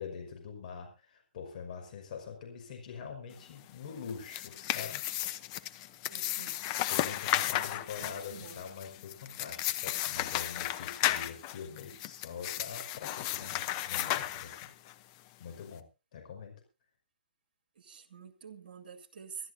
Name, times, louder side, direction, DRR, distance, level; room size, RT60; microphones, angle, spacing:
voice 1, 0.0-5.0 6.9-14.6 15.4-15.8 16.1-16.6, left 6 dB, 50° left, 2 dB, 5.5 m, -44 dB
sound 1, 4.0-14.9, left 14 dB, 30° left, 0.8 m, -34 dB
voice 2, 6.1-6.6 7.4-7.7 8.0-8.6 17.8-19.5, right 6 dB, 60° right, 7 dB, 2.3 m, -48 dB
25.0 x 13.0 x 2.7 m, 0.30 s
hypercardioid pair, 140°, 5 cm